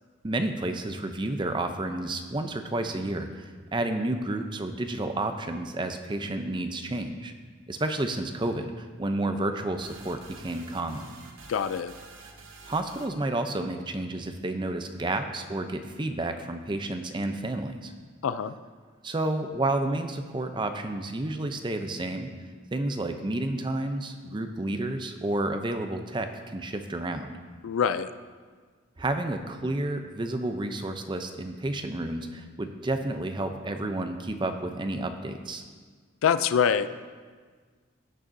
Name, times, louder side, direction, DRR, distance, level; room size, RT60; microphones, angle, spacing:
voice 1, 0.2-3.4 3.7-7.3 7.7-11.1 12.7-17.9 19.0-22.3 22.7-27.3 29.0-35.6, right 2 dB, 25° right, 7 dB, 0.5 m, -30 dB
sound 1, 9.8-13.3, right 3 dB, 70° right, 0.9 m, -48 dB
voice 2, 11.5-11.9 18.2-18.6 27.6-28.1 36.2-36.9, left 7 dB, 80° left, 13 dB, 0.4 m, -24 dB
16.5 x 6.5 x 2.6 m, 1.6 s
head